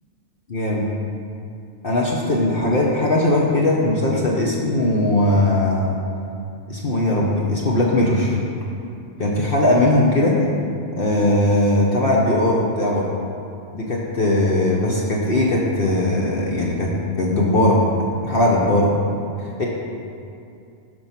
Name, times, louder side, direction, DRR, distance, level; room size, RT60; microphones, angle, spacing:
voice 1, 0.5-0.9 1.8-5.9 6.7-8.4 9.2-10.4 11.0-13.1 13.7-17.8 18.2-18.9 19.6-19.7, left 1 dB, 45° left, -3 dB, 1.2 m, -19 dB
12.0 x 4.6 x 5.8 m, 2.5 s
omnidirectional pair, 1.3 m